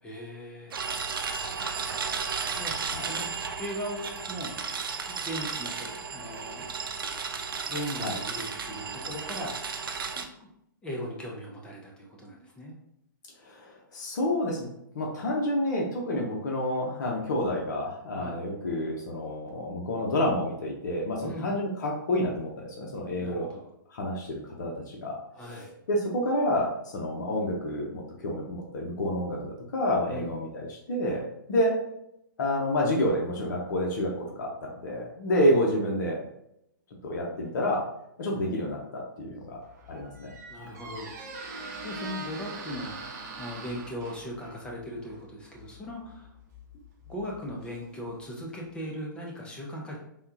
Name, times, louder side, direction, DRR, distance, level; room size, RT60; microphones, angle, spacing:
voice 1, 0.0-0.8 2.5-3.3 3.6-4.5 5.0-6.7 7.6-9.6 10.2-10.5 10.8-12.8 18.1-18.4 21.2-21.5 23.2-23.7 25.3-25.7 30.1-30.3 40.5-41.2 41.5-46.3 47.1-50.0, equal, 10° left, -2 dB, 0.5 m, -39 dB
sound 1, 0.7-10.3, right 5 dB, 85° right, 0.5 m, -34 dB
voice 2, 13.4-14.7 14.9-23.5 23.9-31.2 31.5-31.7 32.4-36.2 37.0-37.8 38.2-39.6 39.9-40.3, left 1 dB, 60° left, -2 dB, 0.8 m, -29 dB
Squeak, 39.5-48.3, right 2 dB, 50° right, 0.7 m, -43 dB
3.5 x 2.3 x 2.8 m, 0.78 s
hypercardioid pair, 140°, 11 cm